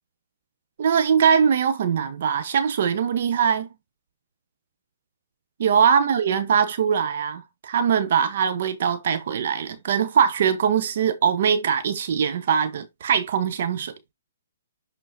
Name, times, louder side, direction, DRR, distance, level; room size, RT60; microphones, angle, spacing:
voice 1, 0.8-3.7 5.6-13.9, right 7 dB, 60° right, 1.1 m, -22 dB
11.5 x 3.8 x 2.8 m
hypercardioid pair, 140°, 0 cm